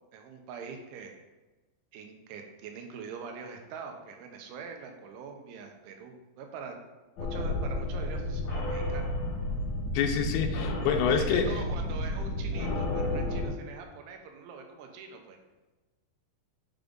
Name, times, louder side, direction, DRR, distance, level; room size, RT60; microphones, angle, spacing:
voice 1, 0.1-1.1 1.9-6.8 7.3-9.1 11.1-15.4, right 5 dB, 90° right, 3 dB, 3.4 m, -43 dB
sound 1, 7.2-13.5, left 1 dB, 60° left, 2.2 m, -31 dB
voice 2, 9.9-11.5, left 6 dB, 80° left, 5 dB, 2.9 m, -27 dB
8.3 x 5.3 x 3.8 m, 1.2 s
omnidirectional pair, 5.3 m